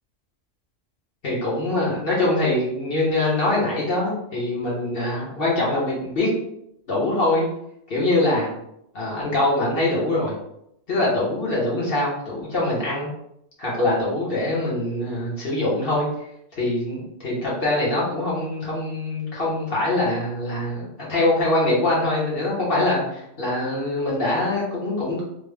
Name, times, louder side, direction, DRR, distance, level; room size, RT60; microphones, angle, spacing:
voice 1, 1.2-6.3 6.9-7.5 7.9-8.5 8.9-10.3 10.9-13.1 13.6-16.1 16.6-25.2, left 2 dB, 50° left, -6 dB, 1.4 m, -23 dB
3.3 x 2.1 x 3.4 m, 0.76 s
omnidirectional pair, 1.2 m